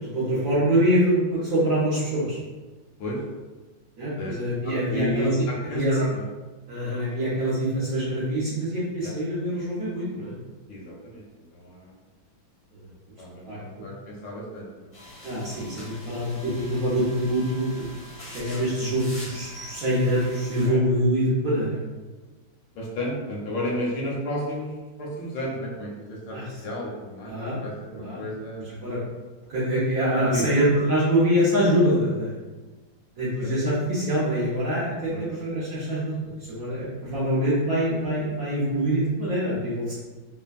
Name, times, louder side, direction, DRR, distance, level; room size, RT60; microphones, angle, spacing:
voice 1, 0.0-2.4 4.0-5.3 5.6-6.0 6.7-10.3 12.7-12.8 13.5-13.9 15.2-17.8 18.3-21.8 26.3-26.5 27.3-27.6 28.0-28.2 28.8-29.0 29.5-32.3 33.2-36.2 36.5-39.9, equal, 65° right, -9 dB, 0.9 m, -24 dB
voice 2, 4.6-6.2 9.0-9.1 10.7-11.9 13.2-14.9 20.6-20.8 22.7-24.7 25.0-28.6 30.1-30.5 33.4-33.5 35.1-35.4, equal, 75° left, -3 dB, 1.3 m, -33 dB
sound 1, 14.9-20.7, left 1 dB, 50° left, 0.7 m, -43 dB
3.3 x 2.1 x 2.3 m, 1.2 s
omnidirectional pair, 2.1 m